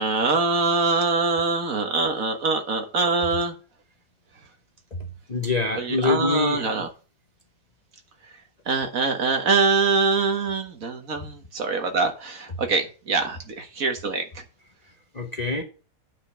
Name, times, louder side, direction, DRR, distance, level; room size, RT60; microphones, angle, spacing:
voice 1, 0.0-3.5 5.8-6.9 8.7-14.3, right 4 dB, 60° right, 1.8 m, -24 dB
voice 2, 5.3-6.7 15.1-15.6, left 3 dB, 30° left, 0.9 m, -25 dB
9.0 x 5.2 x 6.9 m
omnidirectional pair, 1.7 m